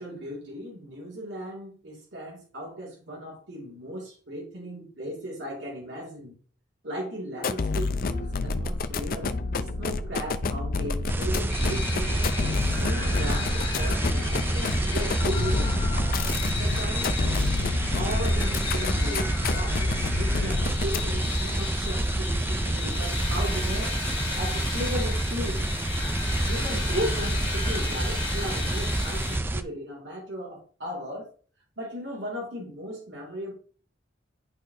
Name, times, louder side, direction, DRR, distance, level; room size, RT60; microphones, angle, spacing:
voice 1, 0.0-6.4 6.8-12.2 12.7-15.7 16.6-17.2 17.9-23.9 24.3-25.7 26.4-31.3 31.8-33.5, equal, 70° right, -3 dB, 2.2 m, -36 dB
sound 1, 7.4-21.3, left 3 dB, 50° left, 0.5 m, -29 dB
sound 2, 11.1-29.6, right 1 dB, 10° right, 0.4 m, -28 dB
sound 3, 11.5-29.4, left 3 dB, 30° left, 1.8 m, -35 dB
11.0 x 4.1 x 2.7 m, 0.42 s
head